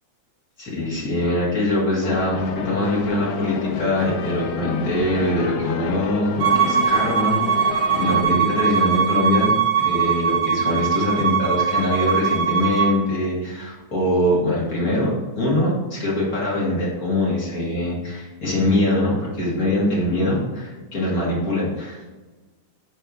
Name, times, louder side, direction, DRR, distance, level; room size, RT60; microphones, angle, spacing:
voice 1, 0.6-22.1, left 1 dB, 35° left, -6 dB, 1.7 m, -23 dB
sound 1, 2.0-8.2, left 6 dB, 80° left, 1.5 m, -30 dB
Bowed string instrument, 6.4-12.9, right 7 dB, 70° right, 2.3 m, -21 dB
5.3 x 4.5 x 4.8 m, 1.2 s
omnidirectional pair, 3.3 m